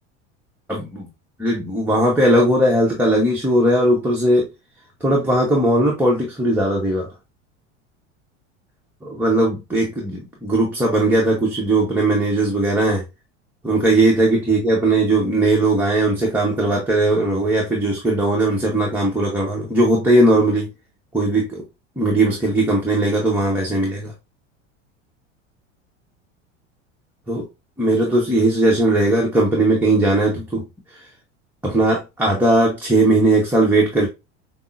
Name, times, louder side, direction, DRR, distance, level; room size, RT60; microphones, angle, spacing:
voice 1, 0.7-1.1 1.4-4.4 5.0-7.1 9.0-13.0 13.6-20.7 21.1-21.6 22.0-24.1 27.3-27.4 27.8-30.6 31.6-34.1, right 1 dB, 5° right, 0.8 m, -18 dB
5.2 x 2.0 x 2.5 m
hypercardioid pair, 95°, 37 cm